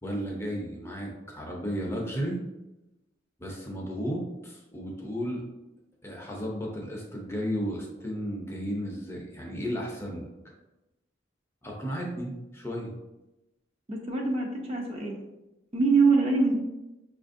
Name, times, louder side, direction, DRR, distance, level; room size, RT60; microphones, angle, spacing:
voice 1, 0.0-2.4 3.4-5.4 6.0-10.3 11.6-12.9, equal, 15° left, -2 dB, 0.6 m, -34 dB
voice 2, 13.9-15.2 15.7-16.5, right 4 dB, 30° right, 0 dB, 0.5 m, -24 dB
5.6 x 2.5 x 2.5 m, 0.98 s
head